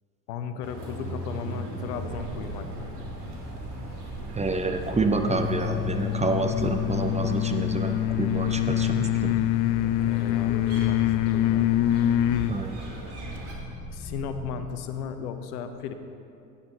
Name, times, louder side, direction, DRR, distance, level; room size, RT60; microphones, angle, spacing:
voice 1, 0.3-2.9 10.0-11.7 13.9-15.9, left 7 dB, 75° left, 9 dB, 0.9 m, -35 dB
sound 1, 0.6-13.5, right 2 dB, 60° right, 2.4 m, -41 dB
sound 2, 2.0-14.7, right 1 dB, 30° right, 3.0 m, -39 dB
voice 2, 4.3-9.3 12.5-12.7, right 3 dB, 15° right, 6 dB, 0.8 m, -28 dB
sound 3, 5.2-12.6, left 13 dB, 45° left, 0.4 m, -25 dB
13.0 x 9.5 x 3.9 m, 2.6 s
hypercardioid pair, 65°, 46 cm